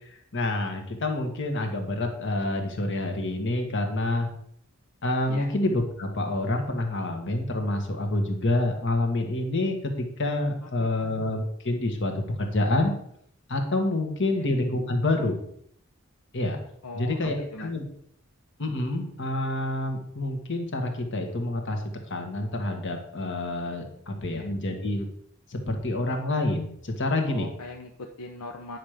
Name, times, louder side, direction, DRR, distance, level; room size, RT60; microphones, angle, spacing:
voice 1, 0.3-4.3 5.0-12.9 13.5-15.4 16.3-16.6 17.0-17.8 18.6-21.8 22.1-25.1 25.5-27.5, left 2 dB, 55° left, 4 dB, 1.7 m, -27 dB
voice 2, 10.6-11.1 14.3-14.5 16.8-17.7 24.3-24.5 27.3-28.8, left 2 dB, 75° left, 2 dB, 0.9 m, -41 dB
9.9 x 6.2 x 5.1 m, 0.69 s
head